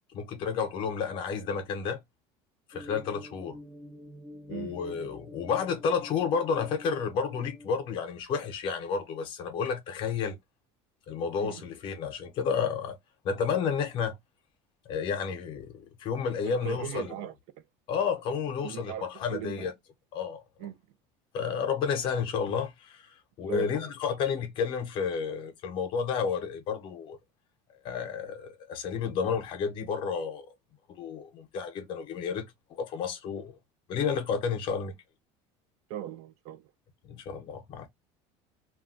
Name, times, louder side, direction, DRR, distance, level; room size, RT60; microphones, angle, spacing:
voice 1, 0.1-2.0 2.7-3.6 4.5-10.4 11.1-13.0 13.2-14.2 14.9-17.1 17.9-19.7 20.1-20.4 21.3-27.2 27.8-30.5 30.9-33.5 33.9-35.0 37.0-37.9, left 6 dB, 40° left, 0.7 m, -31 dB
sound 1, 2.7-7.8, left 1 dB, ahead, 0.5 m, -48 dB
voice 2, 4.5-5.0 11.4-11.7 16.4-17.3 18.6-19.7 20.6-20.8 23.5-24.2 35.9-36.7, right 12 dB, 55° right, 0.4 m, -39 dB
2.3 x 2.1 x 3.6 m
cardioid pair, 165°, 13 cm